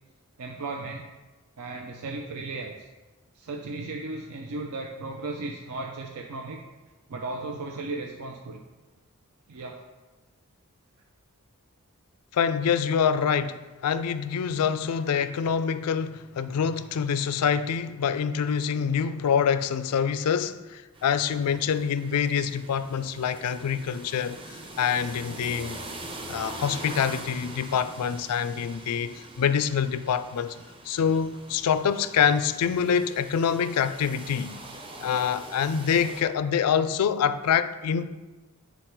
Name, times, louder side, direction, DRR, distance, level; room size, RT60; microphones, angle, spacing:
voice 1, 0.4-1.0 1.6-2.9 3.3-6.6 7.1-8.6 9.5-9.8, right 3 dB, 80° right, 0.5 m, -35 dB
voice 2, 12.3-25.8 26.3-30.6 30.8-34.6 35.0-38.1, left 7 dB, 85° left, 0.4 m, -26 dB
sound 1, 20.9-36.2, right 2 dB, 25° right, 0.6 m, -43 dB
8.1 x 4.0 x 4.5 m
head